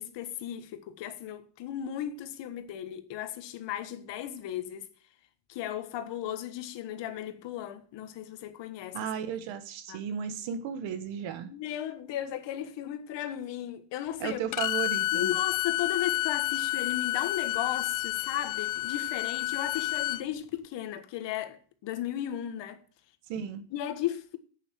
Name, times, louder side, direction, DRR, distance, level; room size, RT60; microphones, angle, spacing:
voice 1, 0.0-4.9 5.5-9.0 9.9-10.0 11.5-14.4 15.1-22.8 23.7-24.4, left 11 dB, 65° left, 1.6 m, -35 dB
voice 2, 8.9-11.5 14.2-15.3 23.3-23.6, right 8 dB, 75° right, 1.6 m, -34 dB
Bowed string instrument, 14.5-20.2, left 16 dB, 45° left, 0.5 m, -30 dB
8.4 x 7.2 x 7.5 m
cardioid pair, 130°, 46 cm